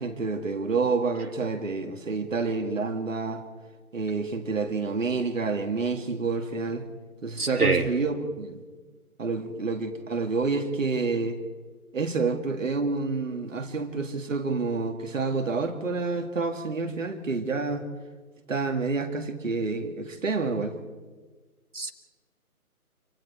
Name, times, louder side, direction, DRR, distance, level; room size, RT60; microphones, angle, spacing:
voice 1, 0.0-3.5 3.9-6.9 7.2-8.6 9.2-11.4 11.9-17.9 18.5-20.8, right 4 dB, 60° right, 5 dB, 2.1 m, -28 dB
voice 2, 7.4-7.9 21.7-21.9, right 4 dB, 80° right, 4 dB, 2.1 m, -24 dB
28.0 x 25.0 x 4.6 m, 1.4 s
figure-of-eight pair, 150°, 44 cm